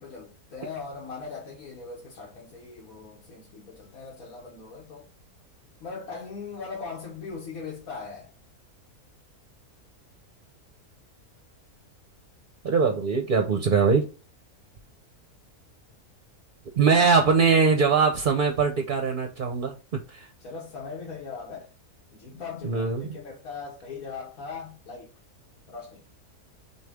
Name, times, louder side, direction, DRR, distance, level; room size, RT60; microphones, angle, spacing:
voice 1, 0.0-5.1 5.8-8.3 20.4-21.7 22.1-25.1 25.7-26.0, left 5 dB, 70° left, 1.6 m, -39 dB
voice 2, 12.6-14.1 16.8-19.8 20.1-20.3 22.6-23.2, right 5 dB, 50° right, 0.7 m, -22 dB
6.3 x 2.4 x 3.5 m
omnidirectional pair, 1.6 m